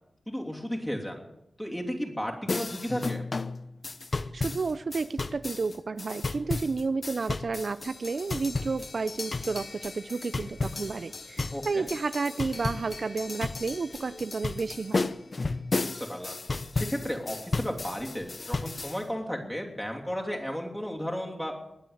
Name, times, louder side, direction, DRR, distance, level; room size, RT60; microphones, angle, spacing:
voice 1, 0.3-1.2 1.6-3.2 11.5-11.9 15.8-16.4 16.7-21.5, equal, 5° left, 1 dB, 3.0 m, -34 dB
sound 1, 2.5-19.0, left 3 dB, 45° left, 0.7 m, -34 dB
voice 2, 4.3-15.1, right 4 dB, 60° right, 13 dB, 0.5 m, -31 dB
21.0 x 7.9 x 7.9 m, 0.86 s
wide cardioid pair, 95°, 0 cm